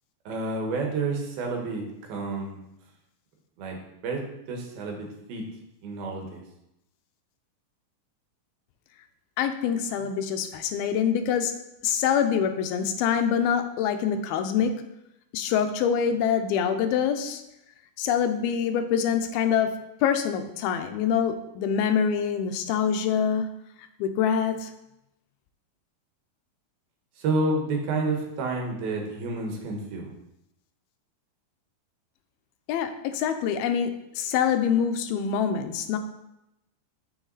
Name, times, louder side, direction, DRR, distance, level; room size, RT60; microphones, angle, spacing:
voice 1, 0.3-2.6 3.6-5.4 5.8-6.4 27.2-30.1, right 3 dB, 80° right, 1 dB, 3.4 m, -30 dB
voice 2, 9.4-11.5 11.8-14.7 15.3-17.4 18.0-19.7 20.0-23.5 24.0-24.7 32.7-33.9 34.2-36.0, left 7 dB, 85° left, 7 dB, 2.6 m, -25 dB
9.1 x 6.8 x 4.0 m, 0.85 s
omnidirectional pair, 4.2 m